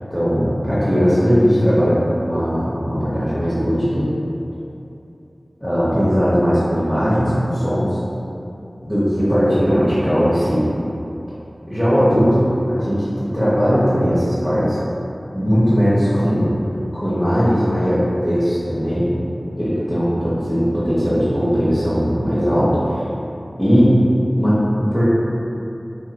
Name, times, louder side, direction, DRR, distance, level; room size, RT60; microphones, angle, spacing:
voice 1, 0.1-4.1 5.6-8.0 8.8-10.6 11.7-14.8 15.3-16.5 16.9-19.1 19.6-23.0 23.6-24.0 24.4-25.0, equal, 10° left, -12 dB, 0.8 m, -18 dB
3.4 x 2.0 x 2.7 m, 2.7 s
wide cardioid pair, 55°, 0 cm